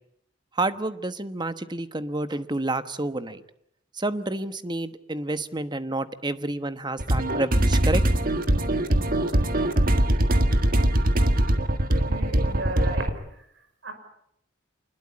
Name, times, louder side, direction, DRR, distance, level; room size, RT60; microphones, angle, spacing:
voice 1, 0.6-3.4 4.0-8.0, right 2 dB, 25° right, 12 dB, 1.1 m, -29 dB
sound 1, 7.0-13.1, right 1 dB, 50° right, 1.7 m, -22 dB
voice 2, 11.9-13.2 13.8-13.9, right 1 dB, 75° right, 7 dB, 5.8 m, -35 dB
25.5 x 21.0 x 8.6 m, 0.73 s
head